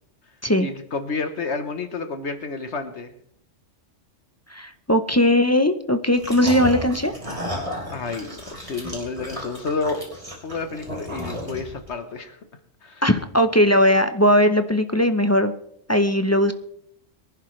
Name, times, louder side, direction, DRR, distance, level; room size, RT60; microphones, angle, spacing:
voice 1, 0.6-3.1 7.9-10.1 10.4-12.4 12.8-13.0, left 4 dB, 65° left, 8 dB, 1.3 m, -30 dB
voice 2, 4.5-7.1 13.0-15.5 15.9-16.5, left 1 dB, 15° left, 8 dB, 0.5 m, -19 dB
sound 1, 6.1-11.9, equal, 25° right, 3.6 m, -33 dB
23.5 x 11.0 x 3.2 m, 0.70 s
omnidirectional pair, 1.3 m